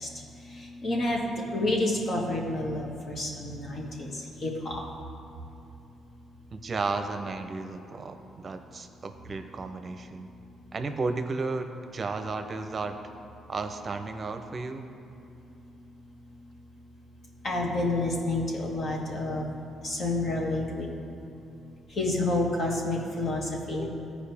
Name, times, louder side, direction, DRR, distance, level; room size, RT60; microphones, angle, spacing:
voice 1, 0.5-4.1 4.4-4.8 17.4-19.5 19.8-20.9 22.0-23.9, left 2 dB, 50° left, -2 dB, 1.8 m, -29 dB
voice 2, 6.5-10.3 10.7-13.0 13.5-14.9, right 3 dB, 40° right, 7 dB, 0.7 m, -33 dB
14.5 x 5.0 x 3.5 m, 2.8 s
cardioid pair, 90°, 0 cm